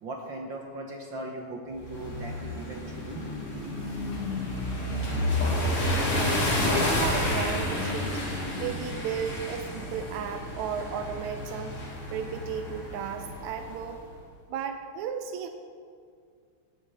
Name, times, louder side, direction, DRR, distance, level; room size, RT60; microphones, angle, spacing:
voice 1, 0.0-3.2, right 2 dB, 60° right, 1 dB, 1.3 m, -38 dB
sound 1, 1.8-13.9, left 1 dB, 25° left, 2.6 m, -30 dB
voice 2, 6.1-8.2 8.6-11.8 12.1-14.0 14.5-15.5, right 7 dB, 85° right, 7 dB, 2.0 m, -34 dB
17.5 x 8.4 x 5.6 m, 2.2 s
omnidirectional pair, 3.4 m